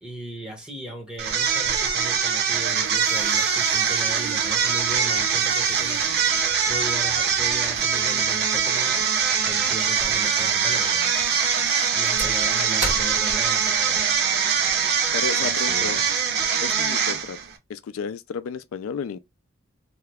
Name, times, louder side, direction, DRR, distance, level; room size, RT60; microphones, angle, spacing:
voice 1, 0.0-6.2 6.6-9.1 9.3-11.2 11.9-14.1 15.4-16.1, right 1 dB, 5° right, 1.1 m, -37 dB
sound 1, 1.2-17.5, right 7 dB, 55° right, 0.6 m, -23 dB
sound 2, 2.4-13.9, right 2 dB, 30° right, 1.3 m, -38 dB
voice 2, 15.1-16.0 16.5-17.4 17.7-19.2, left 6 dB, 90° left, 0.3 m, -32 dB
2.8 x 2.3 x 3.3 m
head